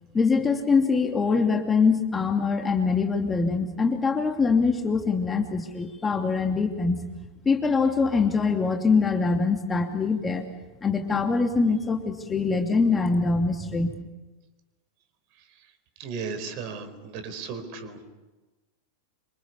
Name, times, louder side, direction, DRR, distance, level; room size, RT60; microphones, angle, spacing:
voice 1, 0.1-7.0 7.4-10.4 10.8-13.9, left 4 dB, 15° left, 4 dB, 2.7 m, -23 dB
voice 2, 16.0-18.1, right 5 dB, 45° right, 11 dB, 4.5 m, -35 dB
27.0 x 26.0 x 7.1 m, 1.1 s
figure-of-eight pair, 90°, 0 cm